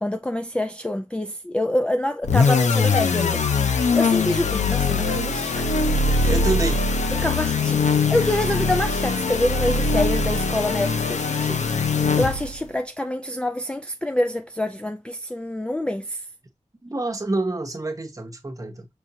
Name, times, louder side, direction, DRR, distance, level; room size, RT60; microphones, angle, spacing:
voice 1, 0.0-3.4 3.9-6.3 7.1-16.2, left 1 dB, 10° left, 0.3 m, -26 dB
sound 1, 2.2-12.7, left 4 dB, 80° left, 0.6 m, -22 dB
voice 2, 6.2-6.9 16.8-18.9, right 2 dB, 30° right, 1.0 m, -27 dB
6.2 x 2.6 x 2.7 m
wide cardioid pair, 90°, 12 cm